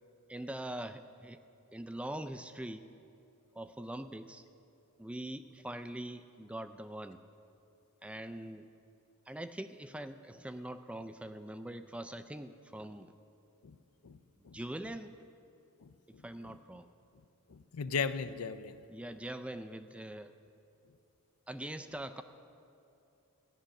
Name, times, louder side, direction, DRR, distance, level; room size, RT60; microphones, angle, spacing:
voice 1, 0.3-1.4 1.7-2.9 3.5-4.4 5.0-7.2 8.0-8.7 9.3-13.1 14.4-15.2 16.1-16.9 18.9-20.3 21.5-22.2, right 1 dB, 5° right, 10 dB, 0.3 m, -43 dB
voice 2, 15.8-16.2 17.5-18.8, left 5 dB, 70° left, 12 dB, 0.5 m, -37 dB
14.0 x 6.4 x 10.0 m, 2.7 s
head